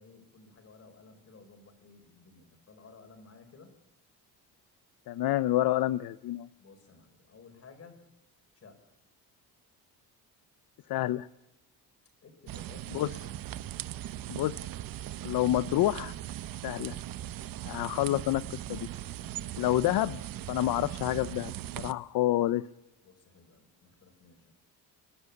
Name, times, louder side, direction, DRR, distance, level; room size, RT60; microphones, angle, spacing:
voice 1, 0.0-3.7 6.6-8.1 8.5-8.8 12.2-13.4 19.2-19.8 21.8-22.0 23.0-24.5, left 4 dB, 40° left, 6 dB, 4.7 m, -55 dB
voice 2, 5.1-6.5 10.9-11.3 12.9-13.1 14.3-14.6 15.2-16.1 16.6-17.0 17.6-18.9 19.6-20.2 20.5-22.6, left 14 dB, 65° left, 15 dB, 0.7 m, -28 dB
sound 1, 12.5-21.9, right 13 dB, 60° right, 0.9 m, -39 dB
30.0 x 12.0 x 8.5 m, 0.93 s
cardioid pair, 135°, 38 cm